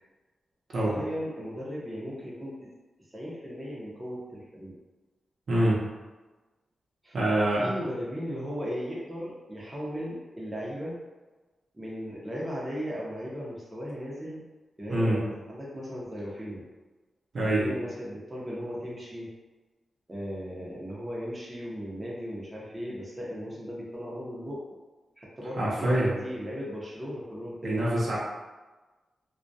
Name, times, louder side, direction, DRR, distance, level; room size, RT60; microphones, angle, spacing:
voice 1, 0.8-2.7 3.1-4.8 7.0-11.0 11.7-14.4 14.8-16.6 17.6-19.3 20.1-24.6 25.2-27.8, equal, 20° right, -5 dB, 0.7 m, -37 dB
voice 2, 5.5-5.8 7.1-7.7 14.9-15.2 17.3-17.7 25.6-26.1 27.6-28.2, right 1 dB, 60° right, -6 dB, 0.7 m, -25 dB
2.2 x 2.2 x 2.6 m, 1.2 s
cardioid pair, 90°, 0 cm